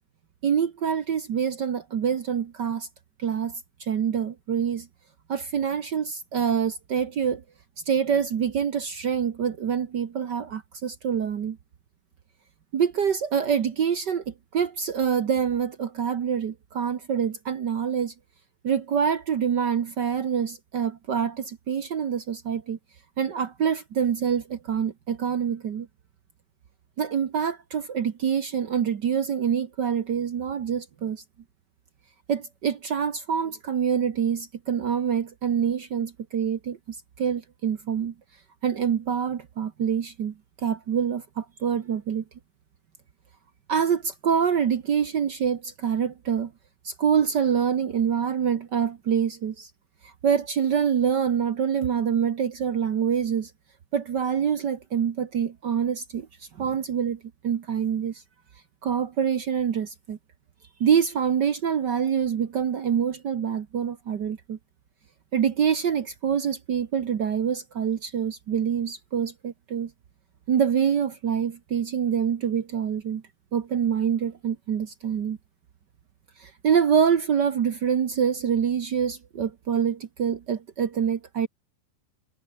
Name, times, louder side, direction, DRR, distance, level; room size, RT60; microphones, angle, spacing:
voice 1, 0.4-2.9 3.2-4.9 5.3-7.4 7.9-11.6 12.7-18.1 18.6-22.8 23.2-25.9 27.0-31.2 32.3-38.1 38.6-42.2 43.7-46.5 46.8-49.7 50.0-53.5 53.9-56.3 56.6-58.2 58.8-60.2 60.8-64.6 65.3-69.9 70.5-73.2 73.5-75.4 76.4-81.5, right 7 dB, 65° right, 1.0 m, -26 dB
omnidirectional pair, 3.7 m